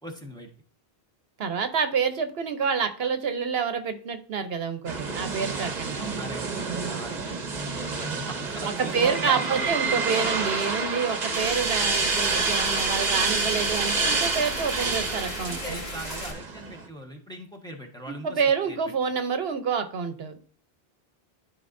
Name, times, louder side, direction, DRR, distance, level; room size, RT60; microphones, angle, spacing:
voice 1, 0.0-0.5 5.5-9.7 15.5-18.8, right 1 dB, 5° left, 0 dB, 1.3 m, -40 dB
voice 2, 1.4-6.0 8.6-15.8 18.1-20.4, right 6 dB, 75° right, 8 dB, 1.1 m, -28 dB
sound 1, 4.9-16.9, right 4 dB, 45° right, 1.1 m, -28 dB
sound 2, 11.3-16.3, left 1 dB, 85° left, 2.7 m, -37 dB
12.5 x 4.7 x 2.6 m, 0.43 s
omnidirectional pair, 1.0 m